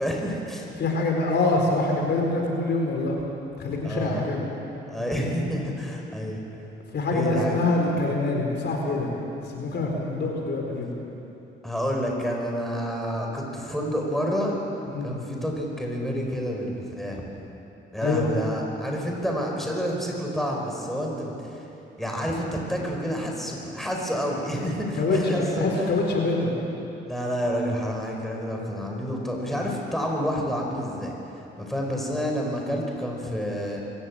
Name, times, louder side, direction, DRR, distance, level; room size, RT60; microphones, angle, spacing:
voice 1, 0.0-0.7 3.8-4.2 4.9-6.4 7.1-7.6 11.6-14.6 15.0-17.2 17.9-21.7 22.0-25.7 27.1-31.1 31.6-33.8, equal, ahead, -1 dB, 5.1 m, -29 dB
voice 2, 0.8-3.2 3.6-4.4 6.9-9.1 9.4-10.9 14.9-15.2 18.0-18.2 25.0-26.5, left 2 dB, 60° left, 0 dB, 4.5 m, -25 dB
25.0 x 15.0 x 8.9 m, 3.0 s
cardioid pair, 90°, 20 cm